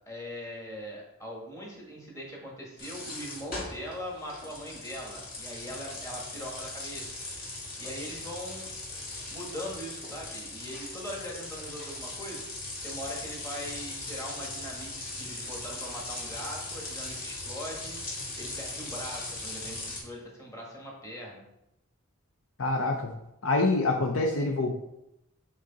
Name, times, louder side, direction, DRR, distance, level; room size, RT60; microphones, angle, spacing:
voice 1, 0.1-7.1 7.8-8.7 9.3-12.4 12.8-18.1 18.4-21.4, equal, 15° left, -2 dB, 1.5 m, -41 dB
sound 1, 2.8-20.0, left 2 dB, 40° left, 1.9 m, -39 dB
voice 2, 22.6-23.1 23.4-24.7, left 2 dB, 65° left, 4 dB, 0.6 m, -26 dB
7.9 x 3.9 x 4.0 m, 0.87 s
head